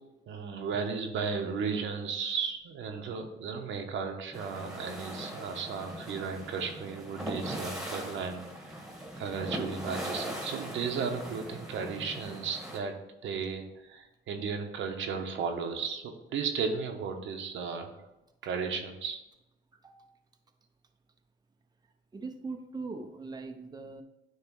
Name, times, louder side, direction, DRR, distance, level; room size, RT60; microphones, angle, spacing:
voice 1, 0.3-8.8 9.2-13.0 13.2-17.9 18.4-19.2, right 5 dB, 75° right, 4 dB, 1.0 m, -35 dB
sound 1, 4.3-12.8, equal, ahead, 1.5 m, -40 dB
voice 2, 22.1-24.0, right 3 dB, 20° right, 5 dB, 0.7 m, -40 dB
9.4 x 3.2 x 4.7 m, 0.93 s
cardioid pair, 90°, 20 cm